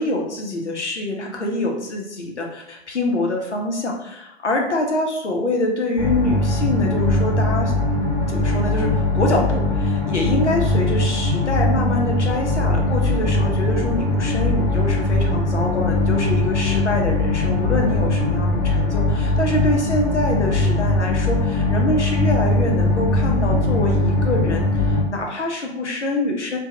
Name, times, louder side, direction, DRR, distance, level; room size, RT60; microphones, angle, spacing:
voice 1, 0.0-7.7 8.3-26.6, left 2 dB, 90° left, 1 dB, 0.6 m, -25 dB
sound 1, 6.0-25.0, left 2 dB, 40° left, 1.0 m, -20 dB
2.4 x 2.3 x 2.6 m, 0.81 s
figure-of-eight pair, 110°, 34 cm